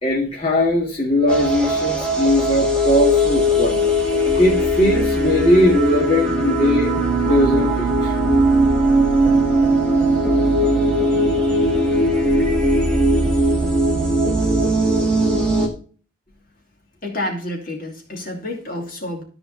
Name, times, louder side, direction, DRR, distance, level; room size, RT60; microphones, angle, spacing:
voice 1, 0.0-3.8 4.3-8.1, left 1 dB, 30° left, 2.2 m, -19 dB
sound 1, 1.3-15.7, right 1 dB, 5° left, 2.4 m, -19 dB
voice 2, 17.0-19.2, left 1 dB, 45° left, 2.8 m, -29 dB
14.0 x 4.9 x 4.1 m
head